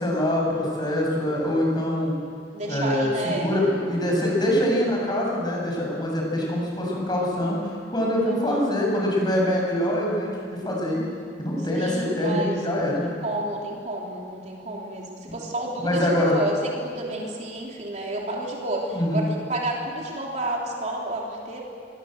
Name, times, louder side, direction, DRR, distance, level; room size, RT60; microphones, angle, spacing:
voice 1, 0.0-2.1 2.7-11.0 11.4-13.1 15.8-16.3 18.9-19.2, left 1 dB, 25° left, -2 dB, 7.4 m, -24 dB
voice 2, 2.5-3.7 8.3-8.7 11.7-12.6 13.0-21.6, right 1 dB, 40° right, -1 dB, 3.4 m, -30 dB
26.5 x 22.0 x 8.1 m, 2.3 s
head